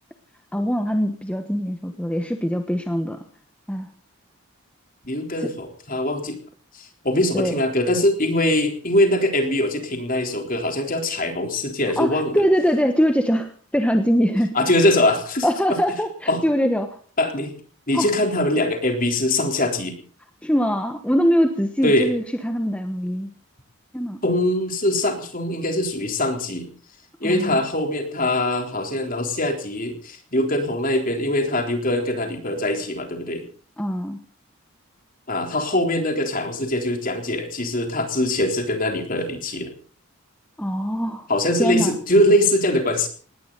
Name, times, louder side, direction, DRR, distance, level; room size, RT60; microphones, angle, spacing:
voice 1, 0.5-3.2 3.7-3.9 5.4-5.5 7.3-7.5 12.0-14.5 15.4-17.0 17.9-18.1 20.4-23.3 23.9-24.2 27.2-27.6 33.8-34.2 40.6-41.2 41.6-42.0, equal, 5° left, 6 dB, 1.2 m, -22 dB
voice 2, 5.0-6.4 6.7-12.4 14.5-15.8 16.3-16.4 17.2-17.5 17.9-20.0 21.8-22.1 24.2-26.7 27.2-33.4 35.3-39.7 41.3-43.1, left 1 dB, 40° left, 4 dB, 3.7 m, -22 dB
19.0 x 18.5 x 4.1 m, 0.42 s
head